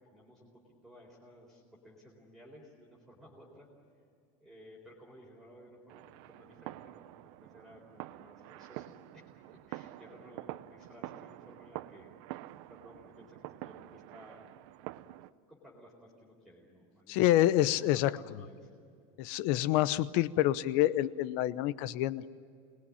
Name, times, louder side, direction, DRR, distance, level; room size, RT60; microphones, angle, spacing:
voice 1, 0.0-3.7 4.4-12.2 12.7-14.5 15.5-18.7, equal, ahead, -5 dB, 4.1 m, -56 dB
sound 1, 5.9-15.3, right 16 dB, 55° right, 0.8 m, -47 dB
voice 2, 17.1-18.2 19.2-22.3, left 14 dB, 50° left, 16 dB, 0.9 m, -27 dB
27.0 x 20.5 x 10.0 m, 2.4 s
supercardioid pair, 165°, 18 cm